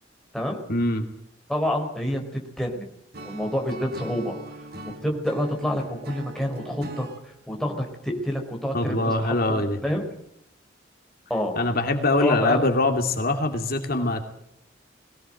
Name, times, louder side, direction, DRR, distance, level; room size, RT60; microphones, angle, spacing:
voice 1, 0.7-1.0 8.7-9.8 11.6-14.2, left 2 dB, 50° left, 5 dB, 2.6 m, -23 dB
voice 2, 1.5-2.8 3.2-4.4 4.8-10.1 11.3-11.5 12.2-12.6, equal, ahead, 2 dB, 4.5 m, -28 dB
Acoustic guitar / Strum, 3.1-7.2, right 2 dB, 55° right, 2.3 m, -40 dB
21.5 x 17.5 x 7.9 m, 0.76 s
head